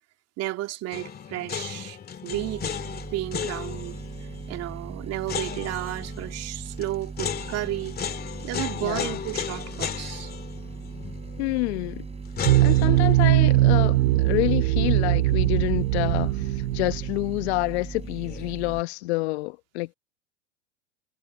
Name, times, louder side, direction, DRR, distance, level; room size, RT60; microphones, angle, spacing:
voice 1, 0.4-2.0 2.2-2.7 3.1-4.0 4.5-8.0 8.4-10.3, right 16 dB, 45° right, 2.6 m, -32 dB
sound 1, 0.9-15.9 16.2-16.3 18.0-18.5, left 7 dB, 25° left, 2.5 m, -36 dB
sound 2, 2.3-18.8, right 4 dB, 15° right, 5.5 m, -39 dB
voice 2, 8.8-9.2 11.4-12.0 12.6-19.9, left 21 dB, 65° left, 1.4 m, -28 dB
sound 3, 12.4-17.5, right 17 dB, 70° right, 0.8 m, -21 dB
hypercardioid pair, 95°, 35 cm